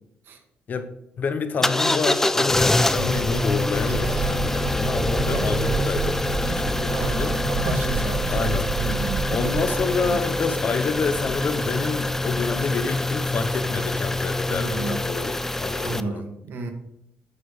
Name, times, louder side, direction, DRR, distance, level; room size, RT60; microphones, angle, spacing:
voice 1, 1.2-7.4 8.3-8.7 9.3-16.2, left 5 dB, 45° left, 9 dB, 1.1 m, -28 dB
sound 1, 1.6-16.0, left 2 dB, 10° left, 0.5 m, -25 dB
sound 2, 3.0-10.2, right 5 dB, 75° right, 1.2 m, -30 dB
sound 3, 3.7-9.0, left 5 dB, 70° left, 1.4 m, -34 dB
voice 2, 6.9-7.2 7.6-8.3 8.8-9.2 10.0-10.2 14.5-15.0 15.8-16.7, right 4 dB, 60° right, 4 dB, 2.0 m, -32 dB
9.7 x 6.7 x 5.4 m, 0.81 s
cardioid pair, 115°, 4 cm